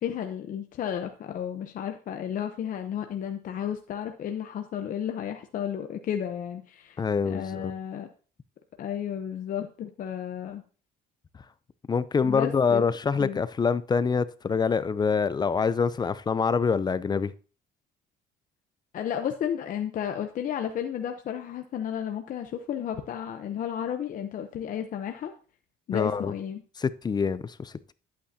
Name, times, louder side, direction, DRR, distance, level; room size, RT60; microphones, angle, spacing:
voice 1, 0.0-8.1 8.8-10.6 12.2-12.9 13.2-13.4 18.9-25.3 25.9-26.6, left 9 dB, 55° left, 0.8 m, -33 dB
voice 2, 7.0-7.7 11.9-17.3 25.9-26.3 26.8-27.9, left 5 dB, 25° left, 0.5 m, -25 dB
11.0 x 8.6 x 2.8 m
cardioid pair, 110°, 17 cm